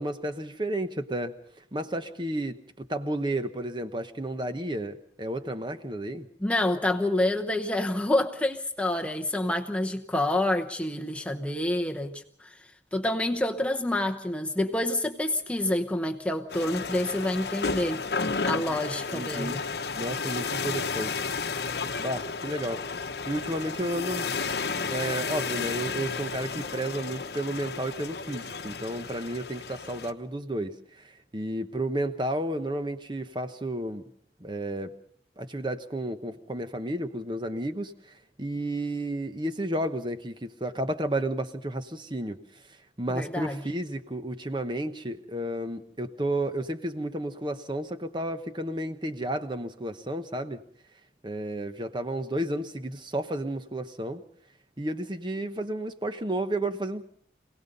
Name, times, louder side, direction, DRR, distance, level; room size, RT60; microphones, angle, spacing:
voice 1, 0.0-1.4 1.7-6.3 18.7-18.8 19.1-19.6 19.9-21.2 22.0-22.8 23.3-24.3 24.7-34.0 34.4-34.9 35.4-37.9 38.4-42.4 43.0-50.6 51.2-54.2 54.8-57.0, right 1 dB, 25° right, 9 dB, 1.1 m, -32 dB
voice 2, 6.4-18.1 18.4-19.7 43.1-43.6, left 1 dB, 5° left, 4 dB, 0.9 m, -28 dB
sound 1, 16.5-30.1, left 4 dB, 65° left, 1.0 m, -32 dB
26.5 x 18.0 x 5.4 m, 0.63 s
head